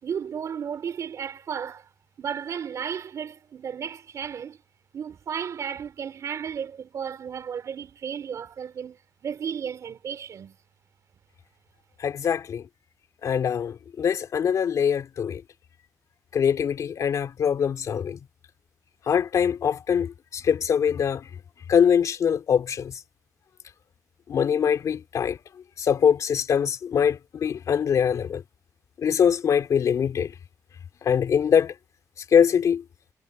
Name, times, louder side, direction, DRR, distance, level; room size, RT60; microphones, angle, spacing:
voice 1, 0.0-1.9 2.2-4.6 4.9-10.6, right 7 dB, 50° right, 4.9 m, -34 dB
voice 2, 12.0-12.6 13.2-15.4 16.3-18.2 19.1-21.2 21.7-22.9 24.3-25.4 25.8-28.4 29.0-30.3 31.0-31.7 32.3-32.8, left 7 dB, 55° left, 3.0 m, -23 dB
wide cardioid pair, 170°, 7 cm